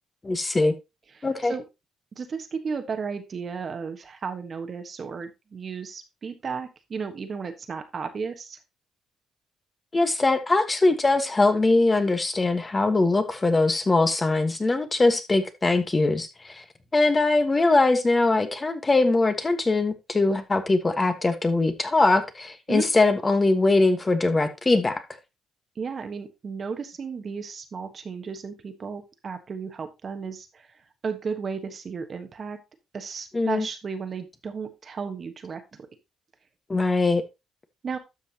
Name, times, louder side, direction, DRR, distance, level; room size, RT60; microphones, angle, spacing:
voice 1, 0.2-0.7 1.2-1.5 9.9-16.6 16.9-25.0 33.3-33.7 36.7-37.2, left 2 dB, 25° left, 1.4 m, -22 dB
voice 2, 1.2-1.6 2.2-8.6 22.7-22.9 25.8-32.6 32.9-35.9 37.8-38.0, right 5 dB, 45° right, 1.3 m, -34 dB
12.5 x 5.6 x 2.9 m
cardioid pair, 90°, 0 cm